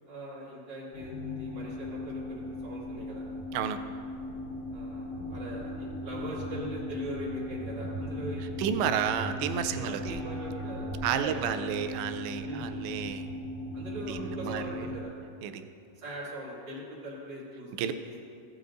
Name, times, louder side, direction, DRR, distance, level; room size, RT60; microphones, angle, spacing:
voice 1, 0.0-3.2 4.7-8.6 9.6-11.5 12.4-12.7 13.7-15.1 15.9-18.2, right 1 dB, 20° right, -8 dB, 1.6 m, -41 dB
sound 1, 0.9-15.0, left 1 dB, 55° left, 2.0 m, -38 dB
voice 2, 8.6-10.2 11.0-13.3 14.1-14.6 15.4-15.7 17.8-17.9, right 8 dB, 90° right, 9 dB, 2.7 m, -31 dB
15.5 x 9.2 x 2.6 m, 2.5 s
omnidirectional pair, 4.8 m